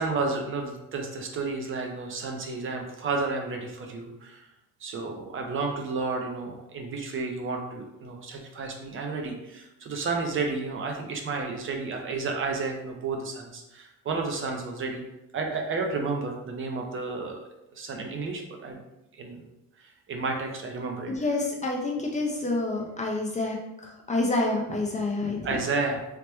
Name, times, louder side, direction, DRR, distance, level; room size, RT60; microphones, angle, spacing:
voice 1, 0.0-4.5 4.8-15.0 15.3-17.4 17.7-18.8 19.1-19.4 19.8-21.1 25.4-26.0, right 3 dB, 40° right, 2 dB, 0.4 m, -31 dB
voice 2, 21.1-23.6 23.8-25.6, left 2 dB, 20° left, 0 dB, 0.4 m, -28 dB
3.2 x 2.1 x 3.0 m, 0.92 s
cardioid pair, 120°, 34 cm